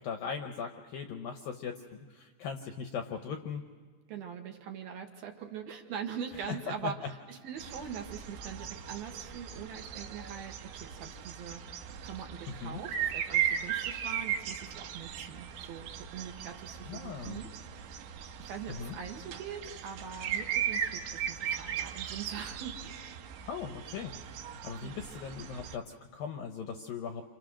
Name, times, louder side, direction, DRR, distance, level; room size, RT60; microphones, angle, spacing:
voice 1, 0.0-3.6 6.5-6.6 6.8-6.9 12.5-12.8 16.9-17.5 18.7-19.0 23.5-27.2, left 6 dB, 80° left, 5 dB, 2.1 m, -39 dB
voice 2, 4.1-7.0 7.3-18.0 18.4-23.2 24.8-25.1, right 7 dB, 65° right, 3 dB, 2.8 m, -43 dB
sound 1, 7.6-25.8, right 9 dB, 85° right, 3.5 m, -37 dB
29.5 x 27.0 x 6.4 m, 1.5 s
omnidirectional pair, 5.3 m